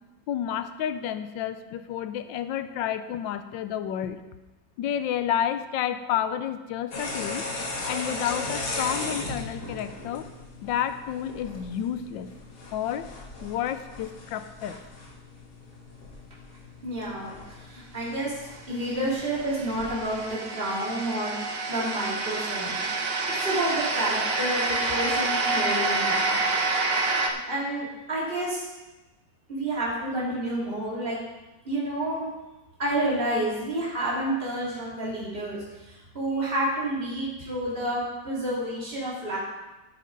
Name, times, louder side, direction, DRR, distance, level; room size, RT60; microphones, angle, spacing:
voice 1, 0.3-4.2 4.8-7.4 7.8-10.3 10.6-12.3 12.7-13.1 13.4-14.8, left 10 dB, 85° left, 10 dB, 1.3 m, -30 dB
sound 1, 6.9-20.2, left 2 dB, 60° left, 2.1 m, -38 dB
voice 2, 16.8-17.3 17.7-18.3 18.7-21.3 21.7-22.8 23.3-26.4 27.1-28.6 29.5-31.2 31.6-32.3 32.8-39.4, right 1 dB, 30° right, -6 dB, 2.9 m, -29 dB
sound 2, 18.9-27.3, right 3 dB, 45° right, 0.8 m, -28 dB
10.0 x 9.4 x 3.9 m, 1.1 s
omnidirectional pair, 2.0 m